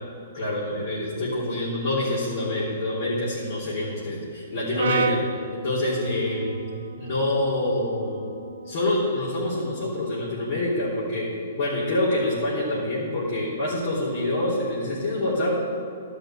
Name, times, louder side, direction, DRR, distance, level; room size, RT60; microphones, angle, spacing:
voice 1, 0.3-5.2 5.5-6.7 7.0-8.3 8.6-11.3 11.6-15.5, left 1 dB, 60° left, -8 dB, 3.3 m, -26 dB
Brass instrument, 4.8-9.0, right 5 dB, 70° right, 0.7 m, -33 dB
12.0 x 5.8 x 7.5 m, 2.4 s
hypercardioid pair, 125°, 0 cm